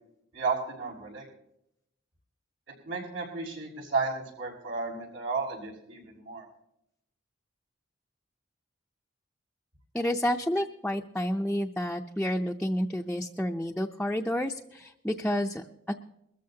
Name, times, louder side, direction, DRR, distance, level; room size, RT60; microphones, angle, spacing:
voice 1, 0.3-1.2 2.8-6.4, right 4 dB, 90° right, -2 dB, 5.8 m, -33 dB
voice 2, 9.9-15.9, equal, 5° left, 1 dB, 0.5 m, -30 dB
21.5 x 14.0 x 2.8 m, 0.78 s
head